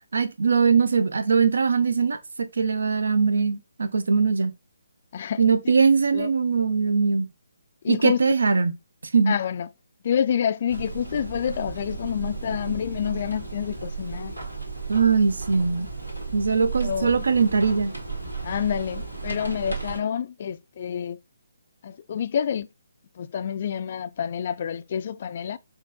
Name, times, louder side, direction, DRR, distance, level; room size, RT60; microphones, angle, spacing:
voice 1, 0.1-4.5 5.4-7.3 7.9-8.7 9.1-9.3 14.9-15.9 16.3-17.9, right 5 dB, 60° right, 0.6 m, -21 dB
voice 2, 7.8-8.3 9.3-9.7 10.0-14.3 16.8-17.3 18.4-21.2 21.8-22.7 23.2-25.6, left 8 dB, 40° left, 0.3 m, -28 dB
sound 1, 10.7-20.0, right 4 dB, 85° right, 1.7 m, -34 dB
6.3 x 2.5 x 2.6 m
figure-of-eight pair, 140°, 0 cm